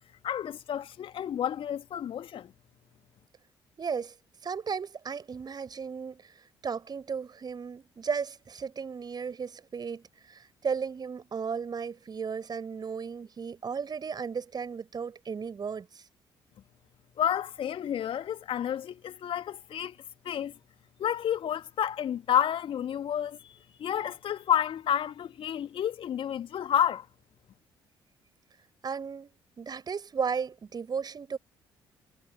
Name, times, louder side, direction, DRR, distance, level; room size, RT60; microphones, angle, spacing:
voice 1, 0.2-2.5 17.2-20.0 20.2-20.5 21.0-23.4 23.8-27.1, left 9 dB, 45° left, 2.4 m, -30 dB
voice 2, 3.8-4.1 4.4-6.3 6.6-16.0 28.8-29.3 29.6-31.4, right 6 dB, 35° right, 5.3 m, -35 dB
figure-of-eight pair, 45°, 12 cm